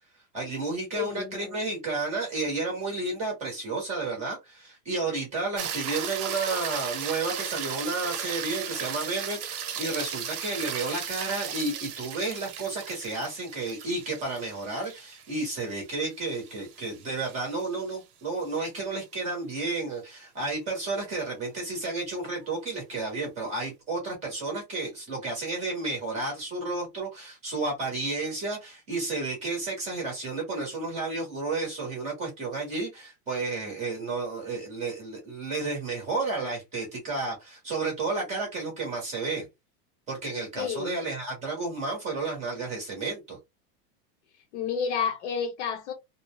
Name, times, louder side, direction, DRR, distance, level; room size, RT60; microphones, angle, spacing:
voice 1, 0.3-39.5 40.1-43.4, right 3 dB, 15° right, 0.7 m, -32 dB
voice 2, 0.9-1.6 40.6-41.0 44.5-45.9, left 7 dB, 50° left, 0.6 m, -31 dB
sound 1, 5.6-18.0 22.4-22.5, right 8 dB, 75° right, 0.9 m, -36 dB
2.5 x 2.0 x 3.0 m
supercardioid pair, 180°, 46 cm